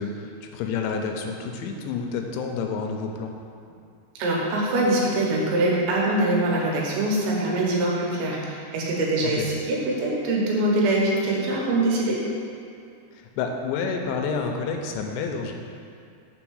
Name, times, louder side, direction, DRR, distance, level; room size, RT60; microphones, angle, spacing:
voice 1, 0.0-3.3 9.2-9.5 13.2-15.5, left 5 dB, 90° left, 3 dB, 2.9 m, -29 dB
voice 2, 4.2-12.2, right 1 dB, 90° right, -3 dB, 3.4 m, -23 dB
7.0 x 3.5 x 6.3 m, 2.5 s
omnidirectional pair, 5.0 m